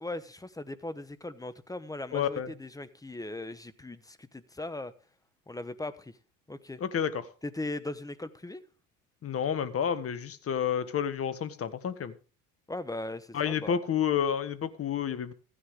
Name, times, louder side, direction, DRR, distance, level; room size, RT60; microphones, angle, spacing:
voice 1, 0.0-4.9 5.5-6.2 6.5-6.8 7.4-8.6 12.7-13.8, left 2 dB, 10° left, 1.0 m, -39 dB
voice 2, 2.1-2.5 6.8-7.2 9.2-12.1 13.3-15.3, left 8 dB, 35° left, 1.5 m, -30 dB
15.0 x 10.0 x 3.7 m
supercardioid pair, 95°, 42 cm